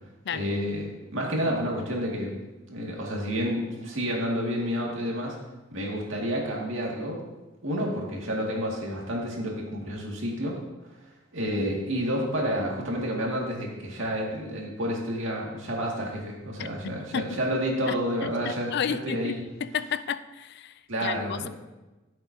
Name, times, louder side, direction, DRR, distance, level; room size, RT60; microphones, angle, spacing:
voice 1, 0.3-0.8 1.1-2.3 2.7-5.4 5.7-7.2 7.6-10.6 11.3-19.4 20.9-21.5, equal, 65° right, -2 dB, 2.2 m, -29 dB
voice 2, 16.8-17.3 17.9-18.0 18.2-19.3 19.6-20.7 21.0-21.5, left 7 dB, 50° left, 14 dB, 0.4 m, -32 dB
14.5 x 7.7 x 2.8 m, 1.1 s
head